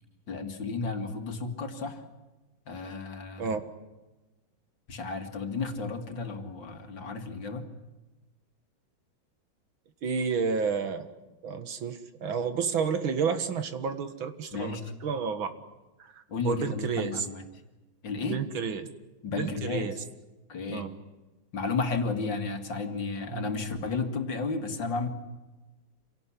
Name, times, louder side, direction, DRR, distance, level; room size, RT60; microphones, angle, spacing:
voice 1, 0.3-2.0 2.7-3.6 4.9-7.7 14.5-14.8 16.3-17.4 18.0-18.4 19.2-19.9 20.5-20.9 21.5-25.1, left 4 dB, 65° left, 6 dB, 2.8 m, -33 dB
voice 2, 10.0-11.1 11.4-15.5 16.0-17.3 18.2-18.9 19.4-19.9 20.7-20.9 23.3-23.5, right 6 dB, 80° right, 9 dB, 2.5 m, -31 dB
27.0 x 18.0 x 9.9 m, 1.1 s
omnidirectional pair, 2.2 m